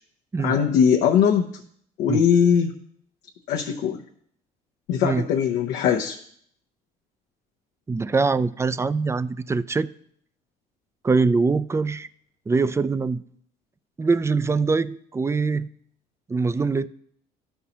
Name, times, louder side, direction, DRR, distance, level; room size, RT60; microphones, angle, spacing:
voice 1, 0.4-1.6 2.0-2.7 3.5-4.0 4.9-6.2, left 7 dB, 80° left, 0.7 m, -20 dB
voice 2, 7.9-9.9 11.0-12.1 12.5-13.2 14.0-15.7 16.3-16.9, right 4 dB, 15° right, 0.3 m, -23 dB
12.5 x 5.5 x 2.8 m
supercardioid pair, 70°, 19 cm